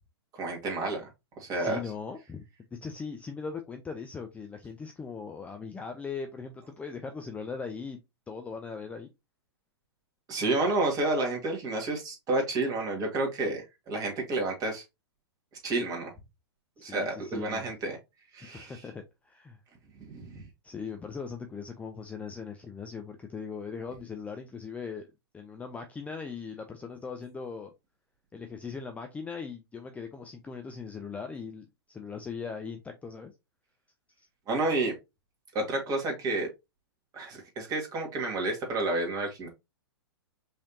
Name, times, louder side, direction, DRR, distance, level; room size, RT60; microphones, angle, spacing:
voice 1, 0.4-1.1 1.4-1.8 10.3-14.8 15.6-16.1 16.8-18.0 18.3-18.7 20.1-20.4 34.5-35.0 35.5-36.5 37.1-39.5, right 2 dB, 25° right, 1.9 m, -30 dB
voice 2, 1.5-2.4 2.7-8.0 8.3-9.1 16.8-17.6 18.4-19.6 20.6-25.1 25.3-27.7 28.3-33.3 34.2-34.3, left 5 dB, 10° left, 0.5 m, -39 dB
5.3 x 3.3 x 2.7 m
hypercardioid pair, 115°, 14 cm